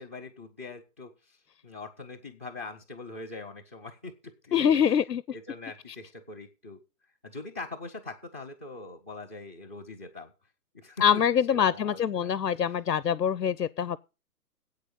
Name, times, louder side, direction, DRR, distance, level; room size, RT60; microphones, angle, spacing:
voice 1, 0.0-1.4 1.6-5.0 5.3-6.8 7.2-10.3 10.7-11.2 11.5-12.3 12.7-12.8, left 3 dB, 10° right, 0.4 m, -42 dB
voice 2, 4.5-5.2 11.0-14.0, left 8 dB, 90° left, 0.6 m, -24 dB
8.4 x 6.5 x 8.1 m
figure-of-eight pair, 130°, 48 cm